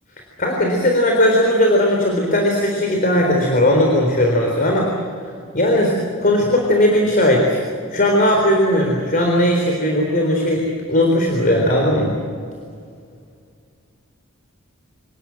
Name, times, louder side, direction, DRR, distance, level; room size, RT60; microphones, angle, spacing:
voice 1, 0.4-4.9 5.5-5.9 6.2-7.6 7.9-12.2, left 1 dB, 40° left, 1 dB, 3.9 m, -17 dB
27.0 x 19.5 x 7.8 m, 2.2 s
head